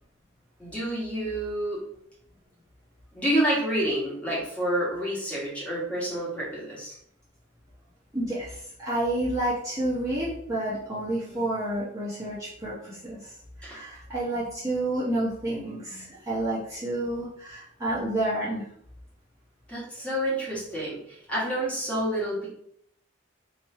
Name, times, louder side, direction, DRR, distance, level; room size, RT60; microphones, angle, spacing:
voice 1, 0.6-1.8 3.1-6.9 13.6-13.8 19.7-22.5, right 1 dB, 5° left, -7 dB, 1.5 m, -28 dB
voice 2, 8.1-13.3 13.6-18.7, right 1 dB, 15° right, -10 dB, 1.1 m, -30 dB
3.1 x 3.0 x 4.3 m, 0.69 s
head